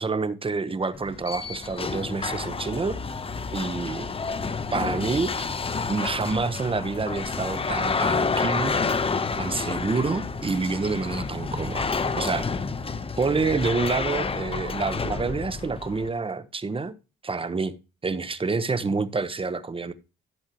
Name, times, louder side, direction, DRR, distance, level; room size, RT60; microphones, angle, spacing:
voice 1, 0.0-3.0 3.5-4.1 4.7-5.3 5.9-8.8 9.4-12.5 13.2-16.9 17.2-17.7 18.0-19.9, right 4 dB, 25° right, 1.2 m, -28 dB
sound 1, 0.9-16.1, left 4 dB, 30° left, 1.1 m, -29 dB
15.5 x 7.7 x 3.1 m
cardioid pair, 90°, 20 cm